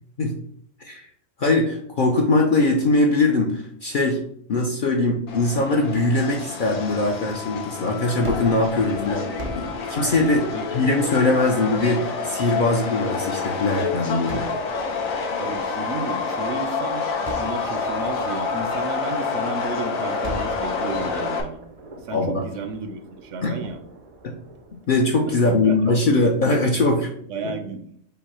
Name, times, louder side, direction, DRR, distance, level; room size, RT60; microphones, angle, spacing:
voice 1, 1.4-4.2 4.5-9.3 9.6-14.5 22.1-22.4 23.4-23.6 24.2-24.3 24.7-27.1 27.4-27.5, left 2 dB, 55° left, 0 dB, 0.6 m, -21 dB
Subway metro underground, 5.3-21.4, left 5 dB, 85° left, 1.2 m, -28 dB
Gunshot gunfire, 8.2-13.4 14.3-16.7 17.3-19.7 20.2-25.4, right 2 dB, 50° right, 0.4 m, -40 dB
voice 2, 15.4-21.6 22.0-23.8 25.3-25.9 27.3-27.8, right 3 dB, 70° right, 7 dB, 0.9 m, -33 dB
5.3 x 2.0 x 4.3 m, 0.66 s
omnidirectional pair, 1.4 m